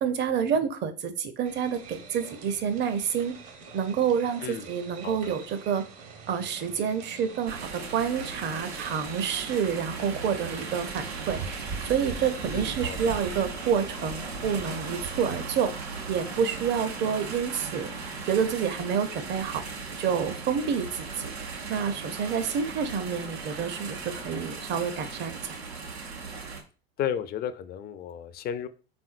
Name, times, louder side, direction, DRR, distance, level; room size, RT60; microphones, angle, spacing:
voice 1, 0.0-3.4 3.7-5.8 6.3-17.9 18.3-19.6 20.0-21.3 21.7-25.6, right 7 dB, 35° right, 10 dB, 0.7 m, -28 dB
sound 1, 1.4-15.4, right 5 dB, 50° right, 1.1 m, -43 dB
cars in traffic light, 7.5-26.6, right 4 dB, 85° right, 0.8 m, -38 dB
voice 2, 12.5-13.1 27.0-28.7, left 9 dB, 30° left, 12 dB, 0.4 m, -33 dB
4.4 x 3.6 x 2.5 m, 0.37 s
hypercardioid pair, 85°, 31 cm